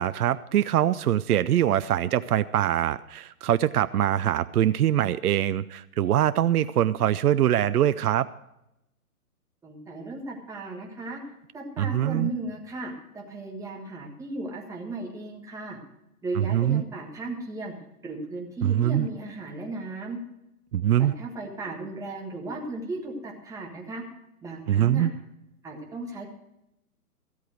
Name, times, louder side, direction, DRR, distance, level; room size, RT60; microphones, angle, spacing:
voice 1, 0.0-8.3 11.8-12.3 16.4-16.8 18.6-19.1 20.7-21.1 24.7-25.1, right 11 dB, 75° right, 14 dB, 0.6 m, -23 dB
voice 2, 9.6-11.2 11.5-15.8 16.2-17.7 18.0-20.2 21.0-24.0 24.4-25.1 25.6-26.3, right 2 dB, 5° right, 0 dB, 1.5 m, -36 dB
13.5 x 8.2 x 6.2 m, 0.86 s
hypercardioid pair, 140°, 45 cm